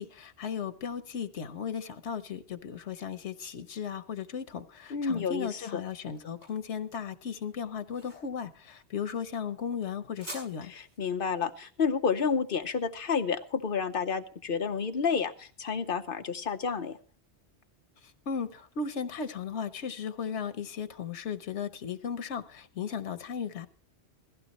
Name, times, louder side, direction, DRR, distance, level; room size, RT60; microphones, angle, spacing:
voice 1, 0.0-10.7 18.3-23.7, left 6 dB, 90° left, 1.2 m, -36 dB
voice 2, 4.9-5.8 10.7-17.0, left 6 dB, 55° left, 1.1 m, -30 dB
sound 1, 5.0-13.7, right 1 dB, 80° right, 6.1 m, -52 dB
17.0 x 15.0 x 3.1 m
omnidirectional pair, 1.1 m